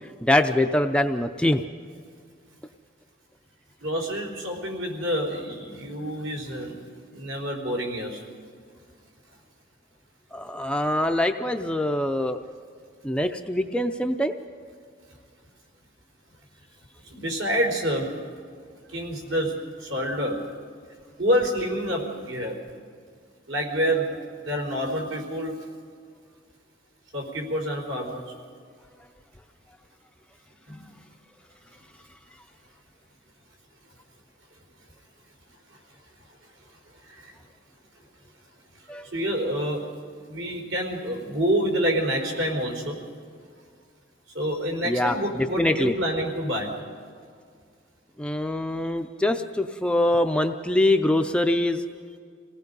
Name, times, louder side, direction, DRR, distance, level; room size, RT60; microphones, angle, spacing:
voice 1, 0.2-1.6 10.3-12.4 13.0-14.4 38.9-39.1 44.8-45.9 48.2-51.8, left 1 dB, 5° left, 5 dB, 0.5 m, -24 dB
voice 2, 3.8-6.8 7.1-8.2 17.0-18.2 18.9-20.5 21.2-22.6 23.5-25.7 27.1-28.2 30.7-30.9 37.0-37.3 39.1-43.0 44.3-46.7, equal, 70° right, 1 dB, 4.2 m, -28 dB
26.5 x 18.0 x 5.4 m, 2.1 s
head